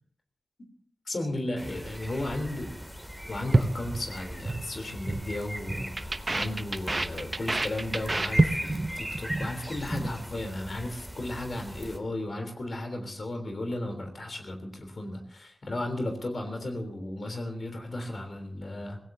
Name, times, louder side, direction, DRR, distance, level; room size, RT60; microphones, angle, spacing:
voice 1, 1.1-2.7 3.3-19.0, left 1 dB, 60° left, 4 dB, 3.5 m, -35 dB
sound 1, 1.6-12.0, equal, 5° left, 2.7 m, -40 dB
sound 2, 3.5-4.6 4.9-5.2 5.5-8.9 9.1-9.5 9.7-10.1, right 2 dB, 35° right, 0.9 m, -27 dB
24.5 x 17.0 x 2.8 m, 0.64 s
wide cardioid pair, 70°, 0 cm